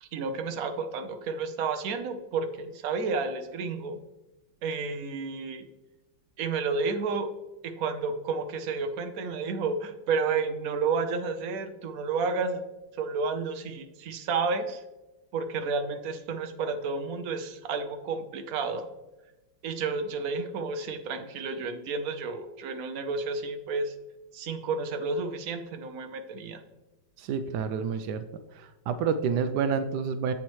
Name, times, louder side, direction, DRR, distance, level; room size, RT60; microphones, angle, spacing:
voice 1, 0.0-4.0 4.6-5.6 6.4-7.3 7.6-12.6 13.0-14.8 15.3-18.8 19.6-24.0 24.3-26.6, right 4 dB, 65° right, 8 dB, 0.9 m, -31 dB
voice 2, 27.2-28.2 28.5-30.3, right 6 dB, 90° right, 10 dB, 0.9 m, -29 dB
8.0 x 7.2 x 3.1 m, 1.0 s
omnidirectional pair, 2.3 m